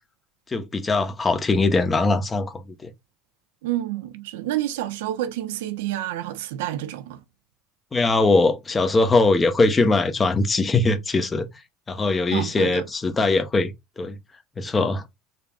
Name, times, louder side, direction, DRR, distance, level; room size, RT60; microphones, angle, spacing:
voice 1, 0.5-2.9 7.9-11.5 11.9-14.2 14.6-15.0, left 3 dB, 25° left, 0.9 m, -21 dB
voice 2, 3.6-7.2 12.3-12.9, right 13 dB, 75° right, 0.5 m, -29 dB
3.8 x 3.3 x 2.3 m
hypercardioid pair, 70°, 0 cm